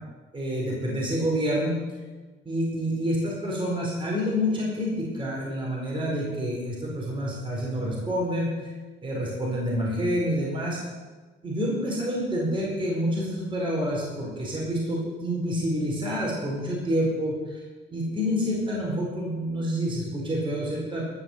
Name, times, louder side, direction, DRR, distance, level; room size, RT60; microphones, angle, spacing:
voice 1, 0.3-1.8 2.4-8.5 9.0-10.8 11.4-17.6 17.9-21.1, equal, 25° right, -4 dB, 4.9 m, -28 dB
14.5 x 6.5 x 8.1 m, 1.3 s
cardioid pair, 90°, 20 cm